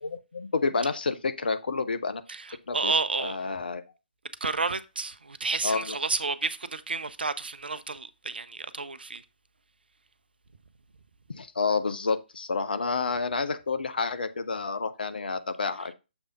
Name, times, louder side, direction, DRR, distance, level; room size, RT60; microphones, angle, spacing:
voice 1, 0.0-2.2 2.7-2.9 3.2-3.8 5.6-6.0 11.3-15.9, left 4 dB, 60° left, 0.7 m, -29 dB
voice 2, 2.3-3.4 4.4-9.2, right 4 dB, 65° right, 0.6 m, -31 dB
7.1 x 3.4 x 5.1 m
figure-of-eight pair, 140°, 6 cm